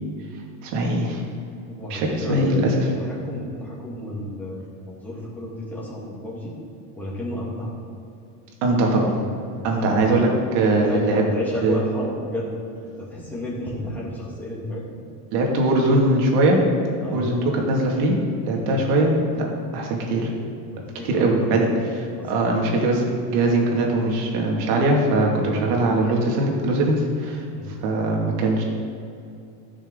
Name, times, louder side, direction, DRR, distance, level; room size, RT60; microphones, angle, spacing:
voice 1, 0.6-1.2 1.9-2.8 8.6-9.2 9.6-11.2 11.6-11.8 15.3-16.6 17.1-18.2 18.5-19.5 19.7-20.3 21.0-21.7 22.2-27.4 27.8-28.6, right 2 dB, 75° right, 0 dB, 2.3 m, -21 dB
voice 2, 1.7-6.5 6.9-7.8 9.5-10.0 10.7-12.5 12.8-14.9 17.0-17.3 18.6-18.8 20.7-21.6 22.2-22.3 25.3-25.8 27.5-27.7, left 1 dB, 5° left, -7 dB, 2.4 m, -32 dB
15.0 x 6.3 x 3.8 m, 2.6 s
cardioid pair, 155°, 47 cm